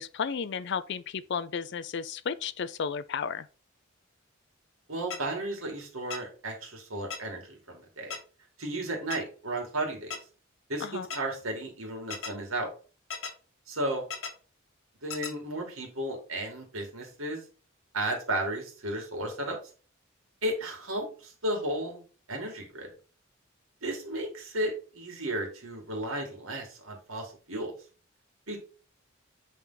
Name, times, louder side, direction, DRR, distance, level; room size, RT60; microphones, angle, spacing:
voice 1, 0.0-3.5 10.8-11.1, left 6 dB, 55° left, 0.5 m, -33 dB
voice 2, 4.9-8.1 8.6-10.2 10.7-12.7 13.7-14.0 15.0-17.4 17.9-19.6 20.4-22.0 22.3-22.9 23.8-27.8 28.5-28.6, right 1 dB, 85° right, 2.4 m, -34 dB
sound 1, 5.1-5.2 6.1-6.2 7.1-7.2 8.1-8.2 9.1-9.2 10.1-10.2 11.1-11.2 12.1-12.3 13.1-13.3 14.1-14.3 15.1-15.3, left 5 dB, 75° left, 1.2 m, -35 dB
8.4 x 3.5 x 4.0 m
head